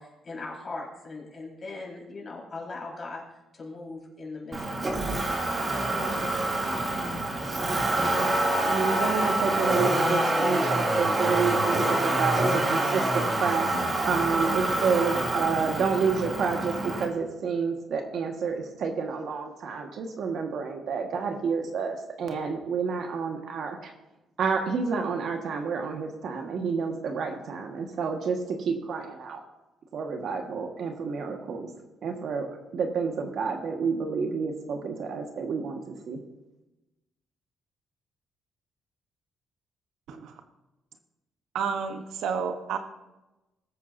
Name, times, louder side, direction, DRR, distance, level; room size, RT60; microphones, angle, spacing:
voice 1, 0.0-3.2 3.5-5.0, left 3 dB, 35° left, -4 dB, 4.8 m, -39 dB
Motor vehicle (road), 4.5-17.0, right 2 dB, 35° right, 2.7 m, -26 dB
voice 2, 8.6-13.7 14.1-23.9 24.4-29.4 29.9-31.7 32.0-36.2, right 5 dB, 65° right, 3 dB, 1.6 m, -29 dB
sound 1, 9.5-16.5, left 1 dB, 5° left, 1.0 m, -35 dB
voice 3, 41.5-42.8, right 6 dB, 80° right, 7 dB, 1.1 m, -30 dB
20.5 x 8.4 x 2.7 m, 1.0 s
cardioid pair, 90°, 0 cm